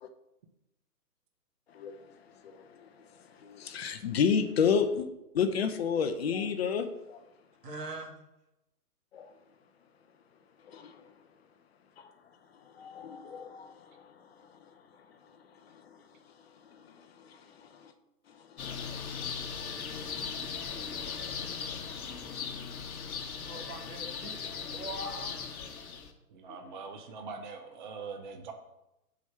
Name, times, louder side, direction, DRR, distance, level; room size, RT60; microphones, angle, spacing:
voice 1, 1.7-2.1 2.4-2.9 3.4-5.1 5.3-7.2 9.1-9.3 10.7-10.9 12.8-14.0 17.0-17.9 18.6-19.2 19.5-19.6 20.0-20.3 20.7-21.2 21.7-21.8 22.2-22.3, left 6 dB, 40° left, 8 dB, 0.7 m, -32 dB
voice 2, 7.6-8.2 23.2-25.5, right 2 dB, 80° right, 2 dB, 1.9 m, -42 dB
sound 1, 18.6-26.1, left 6 dB, 60° left, 1.2 m, -38 dB
voice 3, 26.3-28.5, right 5 dB, 30° right, 5 dB, 0.6 m, -42 dB
6.1 x 4.8 x 5.7 m, 0.91 s
hypercardioid pair, 135°, 48 cm